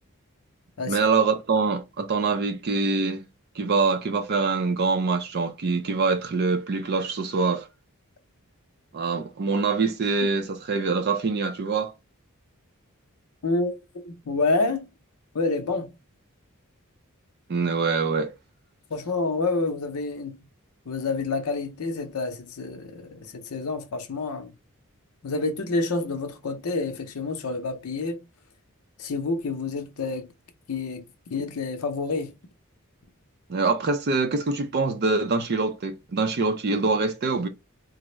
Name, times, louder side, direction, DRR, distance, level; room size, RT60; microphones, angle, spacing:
voice 1, 0.9-3.3 3.6-7.7 8.9-11.9 17.5-18.3 33.5-37.5, right 4 dB, 45° right, 0.4 m, -24 dB
voice 2, 13.4-13.7 14.0-14.8 15.3-15.9 18.9-20.4 20.9-24.5 25.2-28.2 29.0-30.3 30.7-31.0 31.3-32.4, left 3 dB, 80° left, 0.6 m, -28 dB
3.4 x 2.0 x 3.1 m
head